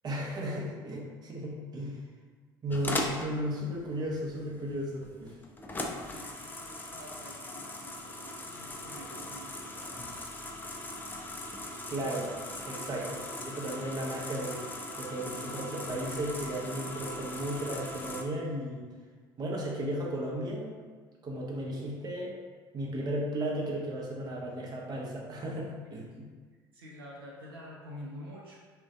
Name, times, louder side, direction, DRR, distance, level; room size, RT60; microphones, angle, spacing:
voice 1, 0.0-2.0 2.6-5.3 11.9-12.3 12.7-14.7 15.0-18.9 19.4-20.7 21.2-22.3 22.7-26.3, right 1 dB, 35° right, -3 dB, 0.7 m, -35 dB
sound 1, 2.7-18.2, left 1 dB, 15° left, 0.4 m, -39 dB
voice 2, 5.8-10.2 26.0-26.2 26.7-28.6, left 1 dB, 80° right, -5 dB, 0.4 m, -48 dB
2.4 x 2.2 x 3.5 m, 1.5 s
figure-of-eight pair, 60°, 12 cm